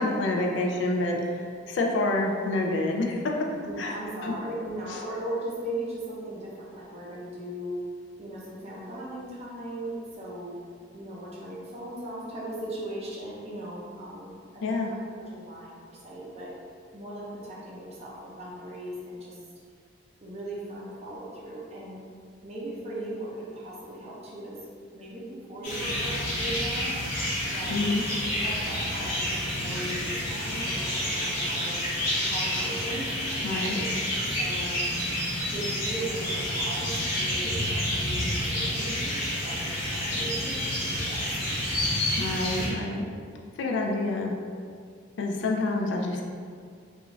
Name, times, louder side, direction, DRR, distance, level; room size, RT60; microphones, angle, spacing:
voice 1, 0.0-3.2 3.8-4.0 4.2-4.3 4.9-5.0 14.6-14.9 27.7-28.0 33.4-33.8 42.2-43.0 43.6-44.3 45.2-46.2, left 2 dB, 65° left, 1 dB, 0.3 m, -27 dB
voice 2, 3.6-7.7 8.2-10.5 10.9-16.5 16.9-19.4 20.2-22.0 22.4-24.6 24.9-26.9 27.5-27.8 28.2-31.8 32.2-33.9 34.2-34.7 35.5-41.8, right 1 dB, 35° right, -5 dB, 0.6 m, -38 dB
sound 1, 25.6-42.7, left 1 dB, 50° left, 0.9 m, -29 dB
2.4 x 2.4 x 3.0 m, 2.2 s
head